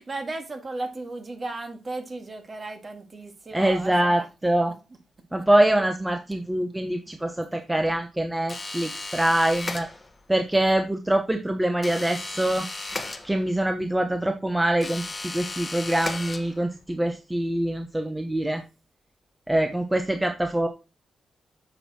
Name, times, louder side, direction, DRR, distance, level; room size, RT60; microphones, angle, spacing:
voice 1, 0.0-4.3 8.8-8.9, right 2 dB, 35° right, 2.1 m, -35 dB
voice 2, 3.5-4.7 5.3-9.9 10.3-12.7 13.2-18.6 19.5-20.7, right 1 dB, 10° right, 0.9 m, -24 dB
sound 1, 8.5-10.3 11.8-13.7 14.8-16.8, left 2 dB, 25° left, 1.3 m, -35 dB
8.9 x 6.5 x 4.3 m
cardioid pair, 110°, 0 cm